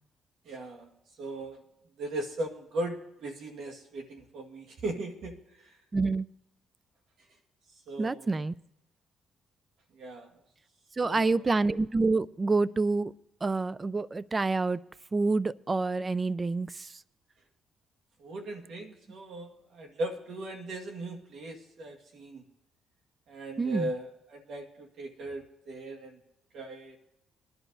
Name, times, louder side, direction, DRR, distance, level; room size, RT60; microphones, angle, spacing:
voice 1, 0.4-0.9 1.2-1.6 2.0-5.8 7.9-8.4 9.9-10.3 11.0-11.6 18.2-22.4 23.3-26.2 26.5-27.0, right 2 dB, 70° right, 2 dB, 1.6 m, -38 dB
voice 2, 5.9-6.3 8.0-8.5 11.0-13.1 13.4-14.8 15.1-16.9 23.6-23.9, right 3 dB, 25° right, 19 dB, 0.4 m, -27 dB
22.0 x 11.0 x 2.6 m, 0.88 s
cardioid pair, 90°, 0 cm